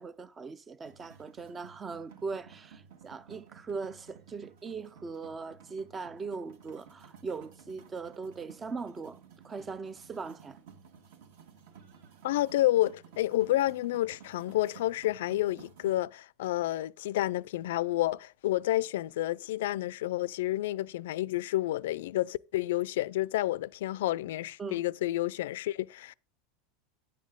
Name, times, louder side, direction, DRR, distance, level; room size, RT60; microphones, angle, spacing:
voice 1, 0.0-10.6 24.6-24.8, right 4 dB, 15° right, 0.3 m, -40 dB
sound 1, 0.8-16.0, right 7 dB, 60° right, 1.5 m, -55 dB
voice 2, 12.2-26.1, left 15 dB, 75° left, 0.3 m, -30 dB
9.8 x 7.4 x 3.7 m
supercardioid pair, 175°, 0 cm